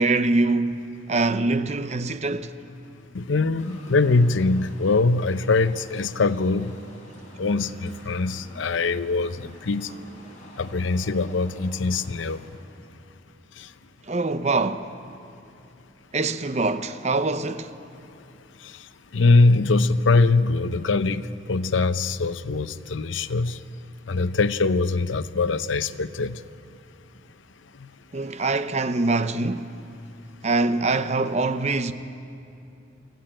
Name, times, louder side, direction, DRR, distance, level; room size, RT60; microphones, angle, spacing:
voice 1, 0.0-2.5 14.1-14.9 16.1-17.7 28.1-29.7 30.4-31.9, right 3 dB, 35° right, 0.8 m, -24 dB
voice 2, 3.1-6.8 7.4-9.9 10.6-12.4 13.6-13.7 19.1-23.6 24.1-26.4 27.8-27.9, left 3 dB, 75° left, 0.6 m, -22 dB
sound 1, 3.6-12.5, equal, 40° left, 5.4 m, -47 dB
24.0 x 15.5 x 8.8 m
head